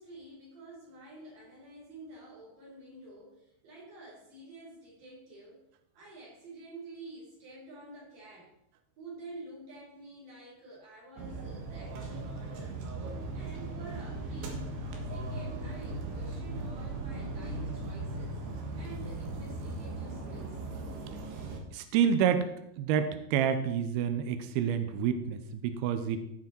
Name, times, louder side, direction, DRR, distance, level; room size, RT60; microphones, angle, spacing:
voice 1, 0.0-3.4 3.6-5.6 5.9-8.5 9.0-12.8 13.3-14.6 15.1-18.4 18.7-20.6, right 2 dB, 45° right, -4 dB, 5.9 m, -49 dB
sound 1, 11.2-21.6, right 2 dB, 65° right, 3.4 m, -38 dB
voice 2, 21.7-22.5 22.8-26.2, right 8 dB, 85° right, 9 dB, 2.2 m, -28 dB
16.0 x 6.2 x 4.5 m, 0.78 s
omnidirectional pair, 5.4 m